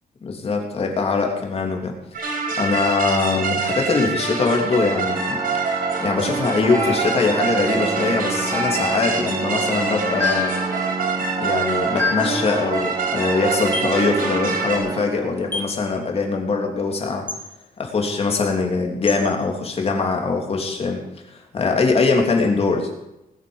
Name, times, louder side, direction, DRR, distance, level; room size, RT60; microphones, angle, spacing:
voice 1, 0.2-1.9 2.3-5.4 6.0-10.5 11.4-17.2 17.8-22.9, left 4 dB, 40° left, 1 dB, 3.1 m, -22 dB
sound 1, 2.1-14.8, right 5 dB, 60° right, 5.4 m, -25 dB
Organ, 4.9-15.9, right 4 dB, 20° right, 0.8 m, -30 dB
sound 2, 6.7-7.4 8.5-9.2 10.2-10.6 12.0-12.4 13.7-14.0 15.5-15.8 17.3-17.5 19.1-19.3, left 4 dB, 10° left, 2.1 m, -26 dB
19.5 x 8.7 x 7.1 m, 0.90 s
wide cardioid pair, 170°, 16 cm